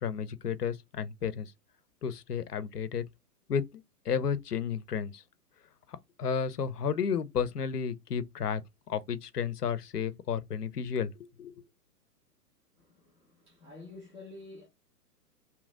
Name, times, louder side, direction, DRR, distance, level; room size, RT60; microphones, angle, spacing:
voice 1, 0.0-1.5 2.0-3.0 3.5-3.6 4.1-5.2 6.2-8.6 8.9-11.6, left 7 dB, 75° left, 0.6 m, -32 dB
voice 2, 12.8-14.7, left 3 dB, 5° right, 0.4 m, -49 dB
2.9 x 2.5 x 3.6 m
figure-of-eight pair, 115°, 48 cm